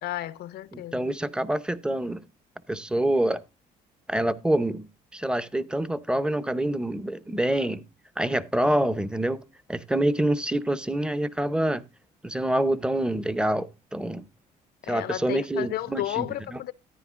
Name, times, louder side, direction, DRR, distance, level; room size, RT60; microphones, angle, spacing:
voice 1, 0.0-1.0 14.8-16.7, left 14 dB, 70° left, 0.6 m, -32 dB
voice 2, 0.7-2.2 2.7-3.4 4.1-7.8 8.2-9.4 9.7-11.8 12.2-14.2 14.9-16.3 16.5-16.6, right 1 dB, 5° right, 0.7 m, -26 dB
14.0 x 10.0 x 2.5 m
cardioid pair, 110°, 17 cm